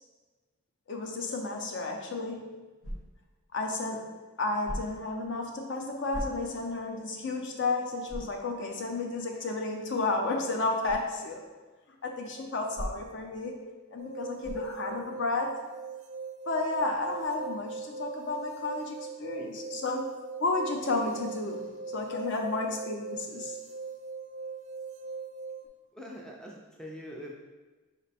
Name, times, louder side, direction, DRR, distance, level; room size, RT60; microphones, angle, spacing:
voice 1, 0.9-2.6 3.5-11.5 12.0-15.6 16.5-20.1 20.4-23.6, left 3 dB, 55° left, 2 dB, 0.5 m, -32 dB
sound 1, 2.8-3.3 4.6-5.1 6.1-6.7 7.2-7.3 8.1-8.4 10.8-11.1 12.7-13.3 14.4-14.8, equal, 75° left, 1.0 m, -38 dB
sound 2, 14.0-25.7, right 4 dB, 80° right, 0.4 m, -41 dB
voice 2, 25.9-27.4, equal, 5° left, -2 dB, 0.3 m, -43 dB
5.1 x 2.2 x 4.0 m, 1.3 s
head